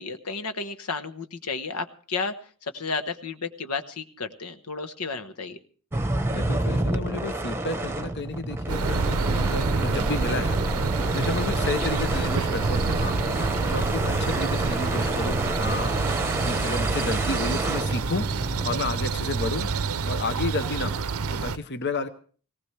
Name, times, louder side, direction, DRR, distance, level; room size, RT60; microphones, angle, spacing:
voice 1, 0.0-2.3 2.6-5.6, left 4 dB, 85° left, 9 dB, 1.2 m, -32 dB
sound 1, 5.9-18.8, right 1 dB, 10° right, 1.0 m, -29 dB
voice 2, 6.3-10.8 11.1-13.2 13.6-18.3 18.6-19.7 20.0-22.1, left 3 dB, 50° left, 10 dB, 0.9 m, -32 dB
sound 2, 7.7-15.7, equal, 15° left, 1.6 m, -36 dB
sound 3, 8.7-21.6, right 4 dB, 70° right, 0.6 m, -28 dB
18.5 x 18.5 x 3.3 m, 0.43 s
head